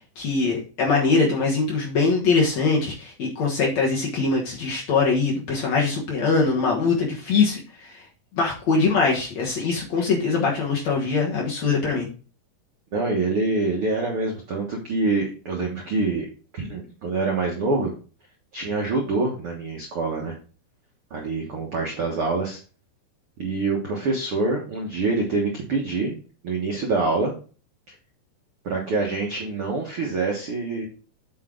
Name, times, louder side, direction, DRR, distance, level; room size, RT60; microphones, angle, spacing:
voice 1, 0.2-8.0 8.3-12.1, left 4 dB, 60° left, -2 dB, 1.9 m, -22 dB
voice 2, 12.9-16.3 16.6-17.9 18.5-20.3 21.1-22.6 23.4-26.2 26.4-27.3 28.6-30.9, right 3 dB, 75° right, 0 dB, 1.2 m, -25 dB
8.5 x 5.5 x 3.7 m, 0.37 s
omnidirectional pair, 4.8 m